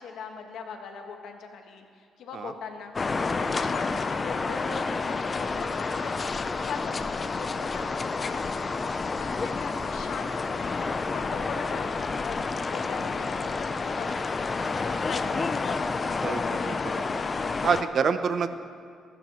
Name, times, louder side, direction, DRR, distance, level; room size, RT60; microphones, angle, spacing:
voice 1, 0.0-2.9 3.2-6.2 6.5-8.7 9.2-10.8 11.0-12.4 12.7-14.5 14.8-17.1 17.7-17.9, left 5 dB, 75° left, 4 dB, 1.4 m, -40 dB
sound 1, 2.9-17.8, left 4 dB, 35° left, 0.5 m, -29 dB
voice 2, 17.6-18.5, right 6 dB, 55° right, 10 dB, 0.7 m, -26 dB
20.0 x 12.0 x 3.1 m, 2.2 s
cardioid pair, 90°, 0 cm